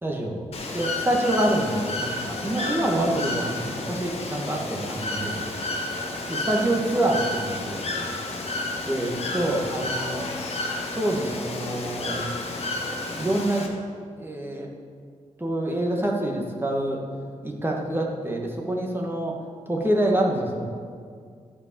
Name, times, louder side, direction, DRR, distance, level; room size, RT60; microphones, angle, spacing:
voice 1, 0.0-0.4 0.7-5.5 6.3-8.1 8.9-10.3 10.9-12.3 13.2-13.7 14.2-14.7 15.4-17.0 17.4-19.3 19.7-20.7, right 1 dB, 20° right, -1 dB, 1.9 m, -26 dB
Bird / Water, 0.5-13.7, left 2 dB, 55° left, 1.6 m, -31 dB
11.5 x 5.1 x 7.1 m, 2.1 s
cardioid pair, 65°, 13 cm